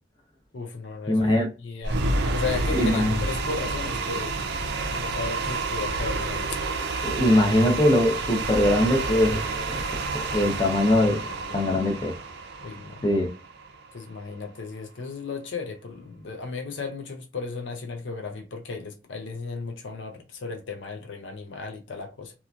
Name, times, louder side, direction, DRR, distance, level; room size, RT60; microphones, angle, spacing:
voice 1, 0.5-2.0 2.3-6.6 10.4-10.5 11.0-11.7 12.6-13.1 13.9-22.3, left 4 dB, 70° left, 0.5 m, -35 dB
voice 2, 1.1-1.5 2.7-3.1 7.0-9.8 10.1-11.2 11.5-12.1 13.0-13.3, left 1 dB, 25° left, 0.7 m, -22 dB
sound 1, 1.8-14.0, right 3 dB, 55° right, 0.5 m, -29 dB
2.8 x 2.4 x 2.4 m
head